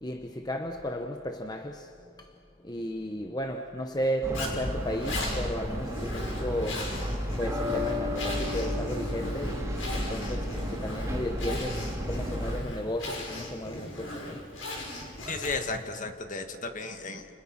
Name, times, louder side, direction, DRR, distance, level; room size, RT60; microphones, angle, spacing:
voice 1, 0.0-1.9 2.7-6.8 7.4-9.6 9.9-14.4, equal, 20° left, 0.9 m, -34 dB
sound 1, 4.2-12.6, equal, 15° right, 2.5 m, -32 dB
Zipper (clothing), 4.3-15.8, left 1 dB, 85° left, 6.1 m, -38 dB
voice 2, 15.3-17.3, left 3 dB, 40° left, 1.9 m, -34 dB
29.5 x 29.5 x 5.9 m
head